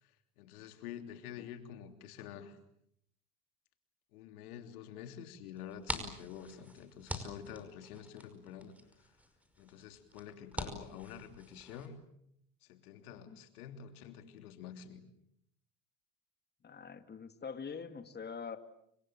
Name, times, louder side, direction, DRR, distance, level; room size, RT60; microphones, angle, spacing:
voice 1, 0.0-2.6 4.1-9.2 9.6-12.0 12.6-15.0, left 9 dB, 80° left, 8 dB, 3.2 m, -48 dB
sound 1, 5.6-11.9, equal, 5° right, 5.3 m, -45 dB
voice 2, 16.6-18.6, left 6 dB, 20° left, 9 dB, 2.2 m, -44 dB
29.5 x 25.5 x 7.5 m, 0.73 s
supercardioid pair, 95°, 44 cm